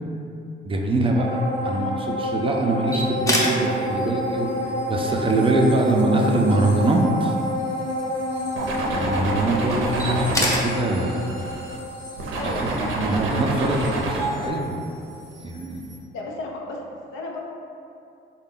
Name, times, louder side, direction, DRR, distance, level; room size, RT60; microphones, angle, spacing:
voice 1, 0.6-4.5 4.9-7.4 8.9-11.4 12.6-14.8 15.4-15.8, right 2 dB, 25° right, 0 dB, 0.4 m, -23 dB
sound 1, 1.1-14.8 15.2-15.3, equal, 45° left, 0.9 m, -29 dB
sound 2, 2.9-16.0, left 1 dB, 15° left, 0.6 m, -34 dB
sound 3, 8.6-11.8 12.2-14.5, right 2 dB, 85° right, 0.5 m, -28 dB
voice 2, 12.3-13.0 15.4-15.5 16.1-17.4, left 2 dB, 80° left, -1 dB, 0.6 m, -34 dB
3.8 x 2.2 x 3.7 m, 2.6 s
cardioid pair, 90°, 20 cm